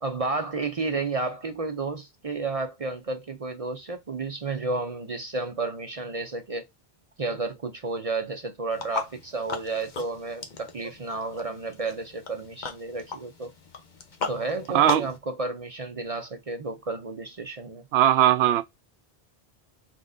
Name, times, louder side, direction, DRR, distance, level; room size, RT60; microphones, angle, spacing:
voice 1, 0.0-6.7 7.2-13.5 14.3-17.8, right 3 dB, 40° right, 0.6 m, -32 dB
sound 1, 8.7-15.2, left 5 dB, 50° left, 0.9 m, -37 dB
voice 2, 14.7-15.1 17.9-18.6, right 12 dB, 80° right, 0.8 m, -19 dB
4.1 x 3.9 x 2.6 m
omnidirectional pair, 1.0 m